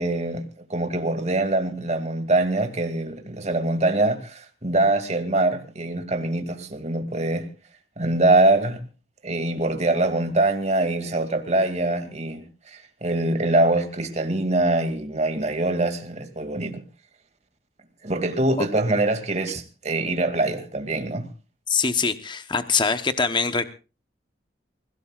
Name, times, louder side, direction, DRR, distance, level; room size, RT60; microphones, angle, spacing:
voice 1, 0.0-7.5 8.0-8.8 9.2-16.8 18.0-21.3, right 2 dB, 40° right, 2.3 m, -23 dB
voice 2, 21.7-23.7, left 5 dB, 25° left, 0.9 m, -23 dB
28.5 x 17.0 x 2.4 m
head